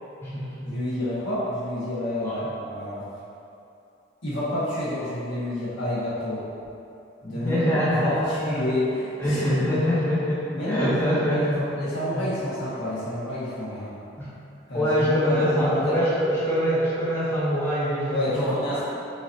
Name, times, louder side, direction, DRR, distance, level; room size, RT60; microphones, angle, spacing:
voice 1, 0.6-3.1 4.2-6.5 7.2-9.9 10.5-13.9 14.7-16.0 18.1-18.8, left 1 dB, 75° left, -10 dB, 1.4 m, -29 dB
voice 2, 7.3-8.6 9.2-11.6 14.2-14.3 14.7-18.8, equal, 10° left, -9 dB, 0.6 m, -24 dB
6.1 x 2.6 x 2.6 m, 2.7 s
head